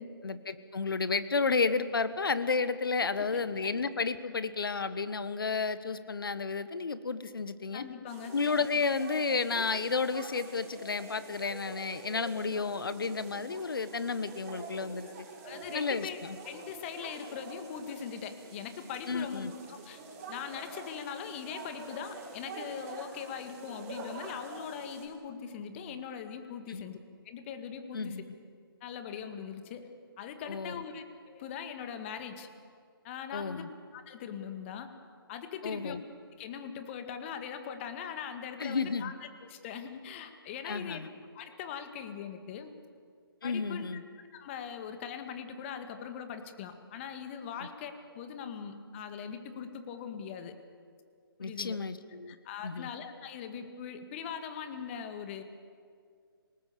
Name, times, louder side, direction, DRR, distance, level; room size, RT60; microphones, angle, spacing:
voice 1, 0.2-7.8 8.3-15.1 15.7-16.4 19.1-19.5 26.7-26.8 27.9-28.2 30.5-30.8 33.3-33.7 35.6-36.0 38.6-39.1 40.6-41.1 43.4-44.0 51.4-52.3 52.6-52.9, left 4 dB, 65° left, 13 dB, 1.5 m, -32 dB
voice 2, 7.7-8.3 15.4-16.2 16.5-20.0 20.3-27.0 27.3-28.2 28.8-29.9 30.2-32.5 33.0-33.6 33.9-34.9 35.3-36.0 36.4-41.1 41.3-42.7 43.4-43.9 44.3-50.5 51.4-51.8 52.3-55.4, left 7 dB, 30° left, 8 dB, 1.9 m, -41 dB
sound 1, 8.1-25.1, right 3 dB, 35° right, 5.4 m, -47 dB
26.5 x 19.5 x 6.9 m, 2.2 s
figure-of-eight pair, 135°, 13 cm